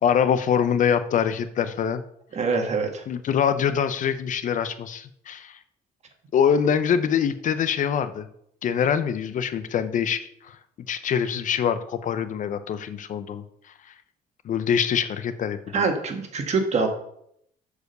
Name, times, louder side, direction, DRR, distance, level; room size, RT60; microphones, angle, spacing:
voice 1, 0.0-2.0 3.1-5.6 6.3-8.3 8.6-10.6 10.9-13.4 14.4-15.8, left 8 dB, 50° left, 12 dB, 0.6 m, -24 dB
voice 2, 2.3-3.0 15.7-16.9, right 4 dB, 40° right, 4 dB, 1.6 m, -24 dB
6.4 x 4.8 x 6.6 m, 0.73 s
cardioid pair, 110°, 17 cm